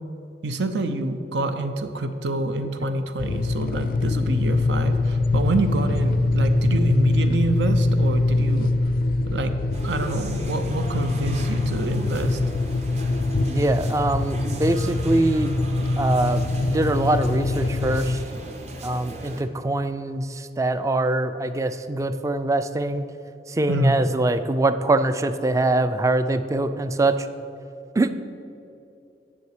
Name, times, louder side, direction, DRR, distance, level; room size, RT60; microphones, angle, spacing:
voice 1, 0.4-8.7 9.2-9.5 9.8-12.4 23.7-24.0, right 2 dB, 85° right, 8 dB, 0.7 m, -26 dB
sound 1, 3.2-18.3, left 2 dB, 55° left, 0.4 m, -23 dB
sound 2, 9.7-19.4, equal, 40° right, 0.8 m, -37 dB
voice 2, 13.5-15.5 16.0-18.2 18.8-23.1 23.5-27.3 27.9-28.1, right 2 dB, 20° right, 11 dB, 0.3 m, -23 dB
9.8 x 7.2 x 4.8 m, 2.7 s
head